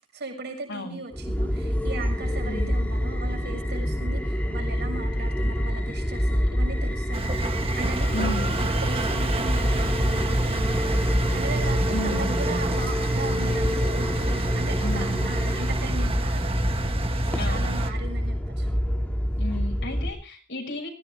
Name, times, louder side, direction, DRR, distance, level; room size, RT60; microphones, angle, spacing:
voice 1, 0.1-16.5 17.2-18.7, right 3 dB, 55° right, 2 dB, 7.0 m, -38 dB
sound 1, 1.1-20.1, equal, 5° left, 2.1 m, -27 dB
voice 2, 2.4-2.7 8.1-8.7 11.9-12.3 14.8-15.3 17.3-17.7 19.4-20.9, left 1 dB, 60° left, 2 dB, 6.6 m, -33 dB
Engine, 7.1-17.9, right 2 dB, 30° right, 1.5 m, -28 dB
20.0 x 17.5 x 3.4 m, 0.36 s
head